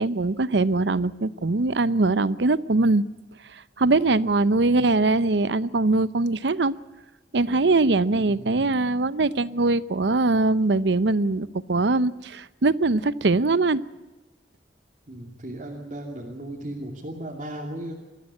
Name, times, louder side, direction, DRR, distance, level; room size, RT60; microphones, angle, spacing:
voice 1, 0.0-3.0 3.8-6.7 7.3-13.8, right 3 dB, 85° right, 17 dB, 0.7 m, -22 dB
voice 2, 8.1-8.7 15.1-17.9, right 1 dB, 45° right, -3 dB, 2.8 m, -36 dB
22.5 x 14.5 x 9.7 m, 1.1 s
head